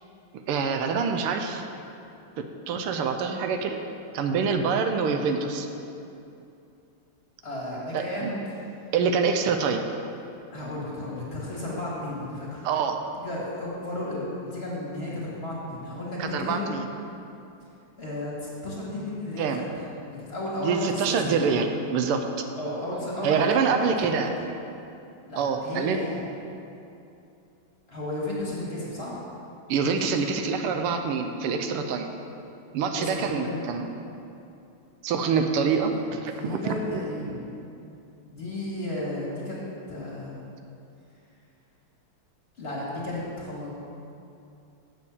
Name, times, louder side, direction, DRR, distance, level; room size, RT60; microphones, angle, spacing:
voice 1, 0.3-1.6 2.4-3.8 4.1-5.7 7.9-8.3 8.9-9.9 12.6-13.0 16.2-16.9 19.4-19.6 20.6-22.4 23.2-24.3 25.4-26.0 29.7-32.1 32.7-33.9 35.0-37.0, right 5 dB, 85° right, 6 dB, 1.6 m, -26 dB
voice 2, 7.4-8.6 10.5-12.7 13.2-16.7 18.0-21.4 22.6-24.3 25.3-26.3 27.9-29.1 30.4-30.5 32.9-33.9 36.3-37.5 38.2-39.6 39.9-40.3 42.6-43.7, left 1 dB, 30° left, -6 dB, 1.9 m, -33 dB
7.6 x 6.3 x 7.1 m, 2.7 s
omnidirectional pair, 2.4 m